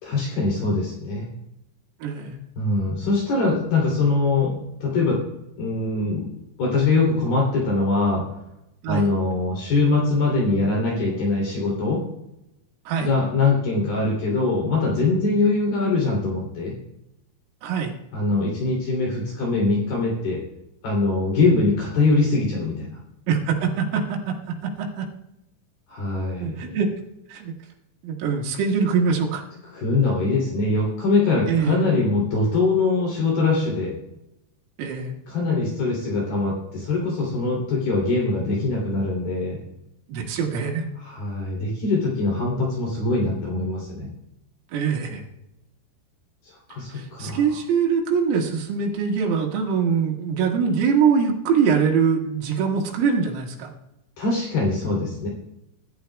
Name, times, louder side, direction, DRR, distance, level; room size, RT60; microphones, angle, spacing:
voice 1, 0.0-1.3 2.6-4.5 4.8-5.2 5.6-6.3 6.6-8.2 8.9-12.0 13.0-16.7 18.1-20.4 20.8-23.0 25.9-26.7 29.7-33.9 35.3-39.6 41.0-44.1 46.4-47.4 54.2-55.3, left 3 dB, 50° left, -3 dB, 4.6 m, -22 dB
voice 2, 2.0-2.4 8.8-9.1 12.9-13.1 17.6-17.9 23.3-25.1 26.4-26.9 27.3-27.5 28.0-29.4 31.5-31.9 34.8-35.2 40.1-40.9 44.7-45.2 46.9-53.7, right 6 dB, 90° right, 0 dB, 4.5 m, -23 dB
22.5 x 11.5 x 2.3 m, 0.87 s
omnidirectional pair, 5.8 m